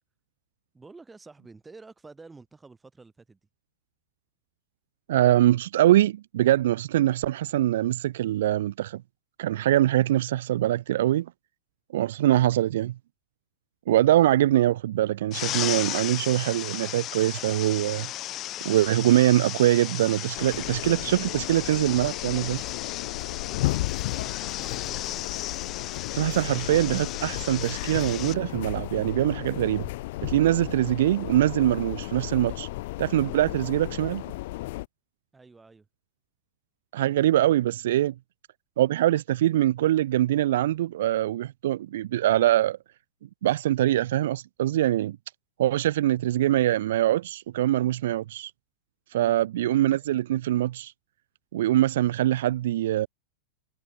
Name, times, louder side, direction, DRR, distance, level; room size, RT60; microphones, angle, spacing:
voice 1, 0.7-3.4 24.0-25.3 35.3-35.9 49.1-49.4, right 3 dB, 10° right, 5.6 m, -49 dB
voice 2, 5.1-9.0 9.4-11.3 11.9-12.9 13.9-18.1 18.6-22.6 26.1-29.9 30.2-32.7 33.0-34.2 36.9-38.1 38.8-42.8 43.4-45.2 45.6-48.5 49.1-50.9 51.5-53.1, right 13 dB, 75° right, 0.5 m, -23 dB
sound 1, 15.3-28.3, left 14 dB, 30° left, 0.4 m, -35 dB
sound 2, 20.3-34.9, left 19 dB, 55° left, 1.1 m, -34 dB
supercardioid pair, 150°, 0 cm